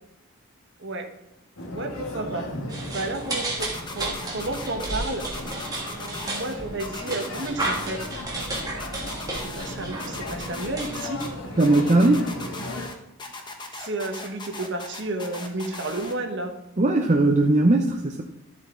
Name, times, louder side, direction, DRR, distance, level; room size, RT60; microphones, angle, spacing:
sound 1, 1.6-12.9, left 1 dB, 70° left, 1.8 m, -37 dB
voice 1, 1.7-2.5 2.9-5.3 6.2-8.4 9.3-11.2 13.7-16.5, right 2 dB, 50° right, 4 dB, 1.2 m, -32 dB
sound 2, 2.7-11.7, right 2 dB, 15° right, 1.6 m, -33 dB
sound 3, 3.6-4.9 5.2-6.5 6.8-8.1 8.4-9.7 10.0-11.3 11.6-12.9 13.2-16.1, left 3 dB, 20° left, 1.0 m, -38 dB
voice 2, 11.6-12.3 16.8-18.2, right 2 dB, 30° right, 2 dB, 0.6 m, -19 dB
12.0 x 7.2 x 3.8 m, 0.91 s
head